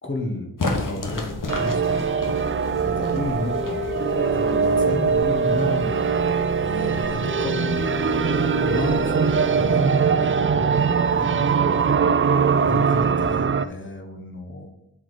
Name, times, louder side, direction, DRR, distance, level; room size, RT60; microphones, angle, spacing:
voice 1, 0.0-1.9 2.8-3.9 4.3-6.3 6.6-8.1 8.6-11.9 12.6-14.7, left 1 dB, 30° left, 2 dB, 1.7 m, -32 dB
sound 1, 0.6-10.4, left 2 dB, 55° left, 1.5 m, -34 dB
sound 2, 1.5-13.7, right 6 dB, 35° right, 0.4 m, -22 dB
sound 3, 3.5-10.8, left 6 dB, 80° left, 1.1 m, -35 dB
7.4 x 4.8 x 5.2 m, 0.85 s
cardioid pair, 60°, 39 cm